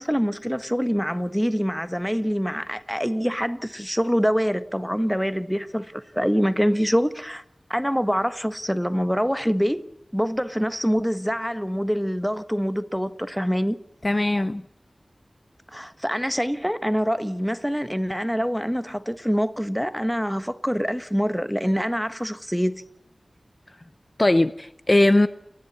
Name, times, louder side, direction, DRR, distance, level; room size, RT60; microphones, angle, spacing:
voice 1, 0.0-7.4 7.7-9.8 10.1-13.8 15.7-22.8, equal, ahead, 1.3 m, -25 dB
voice 2, 14.0-14.6 24.2-25.3, left 1 dB, 30° left, 0.7 m, -19 dB
29.0 x 11.0 x 8.5 m
wide cardioid pair, 55°, 0 cm